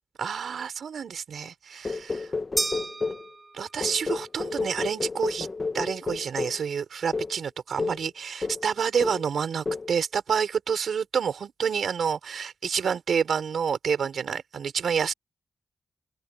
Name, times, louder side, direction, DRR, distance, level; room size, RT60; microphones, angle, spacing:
voice 1, 0.2-2.3 3.5-5.5 5.7-15.1, right 7 dB, 80° right, 5.2 m, -28 dB
sound 1, 1.8-3.3 3.8-6.6 7.1-7.4 7.8-8.1 8.4-8.7 9.0-9.3 9.7-9.9, left 3 dB, 35° left, 1.4 m, -31 dB
sound 2, 2.6-4.0, right 3 dB, 30° right, 1.6 m, -32 dB
open air
wide cardioid pair, 110°, 0 cm